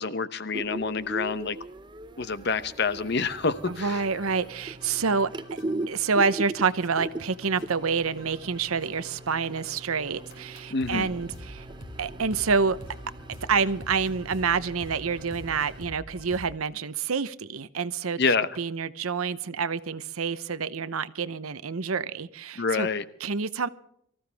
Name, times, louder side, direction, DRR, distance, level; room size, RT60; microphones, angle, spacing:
voice 1, 0.0-1.6 2.2-4.0 10.7-11.1 18.2-18.6 22.6-23.0, left 4 dB, 50° left, 0.9 m, -27 dB
sound 1, 0.5-15.9, right 2 dB, 20° right, 0.7 m, -40 dB
sound 2, 3.0-16.5, equal, 65° left, 5.3 m, -47 dB
voice 2, 3.7-5.3 5.9-11.7 12.0-12.8 13.5-18.2 18.6-22.9 23.2-23.7, right 5 dB, 85° right, 0.8 m, -27 dB
24.0 x 15.0 x 3.5 m
head